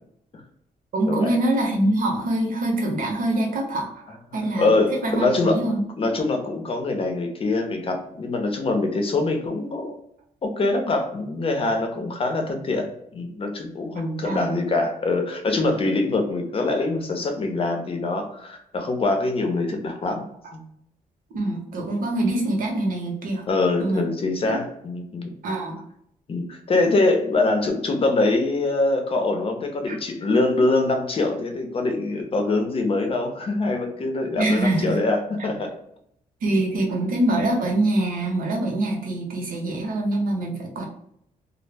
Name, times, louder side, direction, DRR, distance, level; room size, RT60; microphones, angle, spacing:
voice 1, 0.9-5.8 14.2-14.5 21.3-23.4 23.8-24.1 24.5-24.6 25.4-25.8 29.9-30.0 34.4-35.0 36.4-40.9, right 1 dB, 65° right, 0 dB, 0.8 m, -24 dB
voice 2, 4.3-5.6 6.0-10.0 10.4-12.9 13.1-20.2 20.5-20.6 23.5-25.3 26.3-35.7 39.6-39.7, left 2 dB, 40° left, 4 dB, 0.6 m, -24 dB
2.0 x 2.0 x 3.3 m, 0.73 s
cardioid pair, 95°, 15 cm